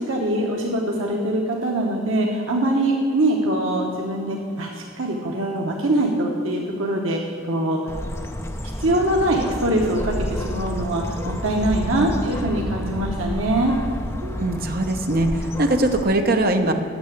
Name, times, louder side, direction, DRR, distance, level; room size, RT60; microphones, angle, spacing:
voice 1, 0.0-7.8 8.8-13.7, right 1 dB, 80° right, -1 dB, 1.1 m, -23 dB
Bird, 7.9-16.0, equal, 15° left, 0.6 m, -30 dB
voice 2, 14.2-16.7, right 1 dB, 45° right, 5 dB, 0.8 m, -21 dB
9.5 x 6.8 x 8.2 m, 2.7 s
head